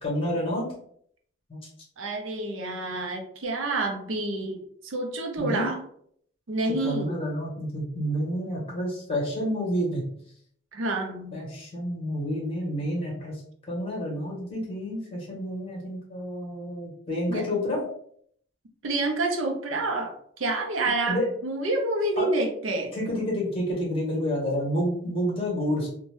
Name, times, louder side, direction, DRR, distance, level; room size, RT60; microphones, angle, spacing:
voice 1, 0.0-0.6 1.5-1.6 5.4-5.7 6.8-10.0 11.3-13.4 13.7-17.8 21.1-21.2 22.2-22.3 22.9-25.9, equal, 30° left, -4 dB, 1.2 m, -29 dB
voice 2, 2.0-5.8 6.5-7.2 10.7-11.4 17.3-17.4 18.8-22.9, right 2 dB, 80° right, 3 dB, 0.5 m, -28 dB
2.6 x 2.1 x 3.2 m, 0.64 s
head